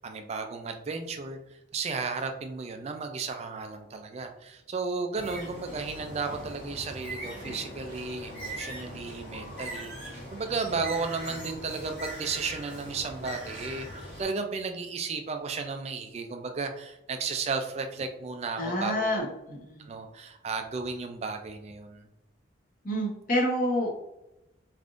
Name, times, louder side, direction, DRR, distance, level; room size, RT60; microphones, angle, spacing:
voice 1, 0.0-19.1 19.9-22.0, right 4 dB, 35° right, 5 dB, 0.3 m, -34 dB
Bird, 5.1-14.2, right 1 dB, 70° left, 1.4 m, -41 dB
voice 2, 18.6-19.8 22.8-23.9, equal, 45° left, -1 dB, 0.9 m, -28 dB
3.5 x 2.5 x 2.4 m, 0.90 s
head